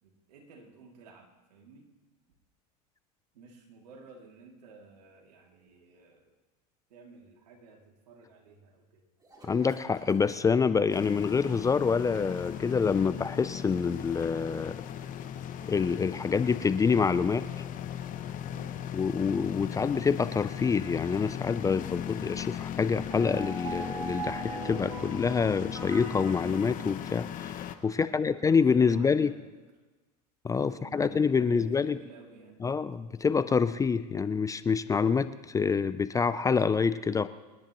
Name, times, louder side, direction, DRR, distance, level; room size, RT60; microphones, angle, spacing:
voice 1, 0.0-1.9 3.3-6.3 6.9-9.0 18.5-18.8 27.9-29.7 30.6-32.6, right 4 dB, 80° right, 1 dB, 2.6 m, -53 dB
sound 1, 9.2-19.1, right 1 dB, 20° right, 3.5 m, -57 dB
voice 2, 9.5-14.8 15.6-17.5 18.9-29.3 30.4-32.0 32.6-37.3, left 5 dB, 15° left, 14 dB, 0.4 m, -27 dB
sound 2, 10.9-27.8, left 10 dB, 40° left, 1.0 m, -38 dB
sound 3, 23.1-27.4, right 3 dB, 60° right, 3.5 m, -41 dB
27.5 x 10.5 x 3.0 m, 1.2 s
hypercardioid pair, 95°, 21 cm